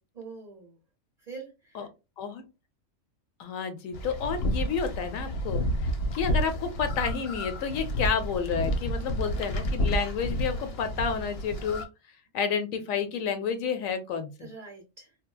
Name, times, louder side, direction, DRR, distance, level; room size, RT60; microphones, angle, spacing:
voice 1, 0.1-0.8 1.2-1.9 14.4-15.2, right 4 dB, 40° right, 0 dB, 0.6 m, -44 dB
voice 2, 3.4-11.8 12.3-14.5, left 6 dB, 80° left, 8 dB, 1.0 m, -30 dB
sound 1, 3.9-11.8, equal, 55° left, 0.8 m, -30 dB
3.7 x 2.0 x 2.2 m, 0.27 s
omnidirectional pair, 1.4 m